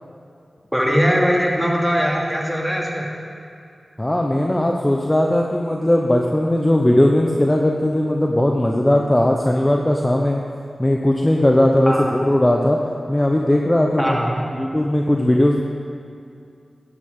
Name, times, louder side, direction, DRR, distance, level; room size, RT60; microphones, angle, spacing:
voice 1, 0.7-3.1 11.9-12.1 14.0-14.3, equal, ahead, -3 dB, 2.6 m, -20 dB
voice 2, 4.0-10.4 10.8-12.8 13.1-14.2 14.5-15.6, left 1 dB, 20° left, 1 dB, 1.0 m, -18 dB
12.5 x 11.5 x 3.9 m, 2.5 s
cardioid pair, 45°, 0 cm